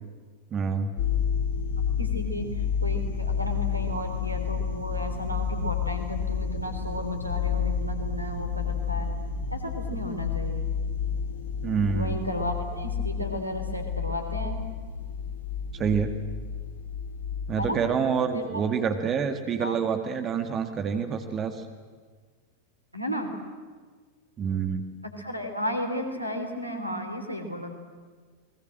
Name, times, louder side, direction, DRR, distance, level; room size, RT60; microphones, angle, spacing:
voice 1, 0.5-0.9 11.6-12.2 15.7-16.1 17.5-21.6 24.4-24.8, right 6 dB, 25° right, 7 dB, 1.9 m, -27 dB
sound 1, 1.0-17.7, left 6 dB, 60° left, 2.6 m, -30 dB
voice 2, 2.0-9.1 9.5-10.7 11.9-14.6 17.6-17.8 18.3-18.6 19.6-19.8 22.9-23.3 25.0-27.8, equal, 85° right, 6 dB, 3.4 m, -33 dB
29.5 x 20.5 x 7.7 m, 1.5 s
figure-of-eight pair, 90°, 0 cm